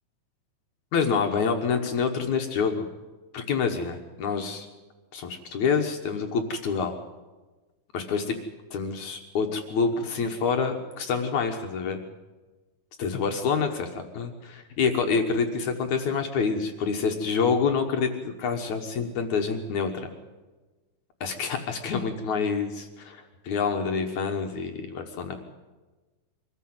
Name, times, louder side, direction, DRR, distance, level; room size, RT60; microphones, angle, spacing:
voice 1, 0.9-2.9 3.3-4.7 5.1-7.0 7.9-8.4 8.7-12.0 13.0-18.1 18.4-20.1 21.2-25.4, left 5 dB, 60° left, 4 dB, 2.1 m, -27 dB
24.0 x 15.0 x 7.9 m, 1.2 s
omnidirectional pair, 4.8 m